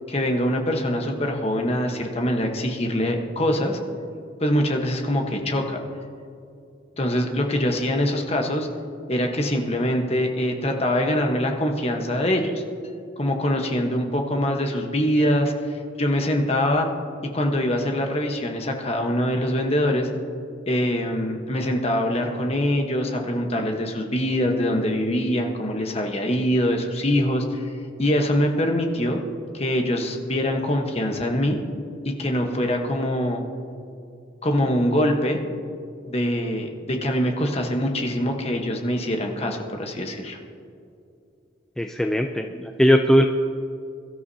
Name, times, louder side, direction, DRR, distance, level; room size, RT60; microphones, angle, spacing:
voice 1, 0.1-3.8 4.4-5.8 7.0-8.7 9.1-12.6 13.2-16.9 17.3-20.1 20.7-27.7 28.0-29.2 29.5-31.6 32.2-33.4 34.4-35.4 36.1-40.4, equal, 30° left, 3 dB, 1.2 m, -23 dB
voice 2, 41.8-42.5 42.8-43.2, equal, 5° left, 3 dB, 0.4 m, -18 dB
22.5 x 13.0 x 2.8 m, 2.5 s
head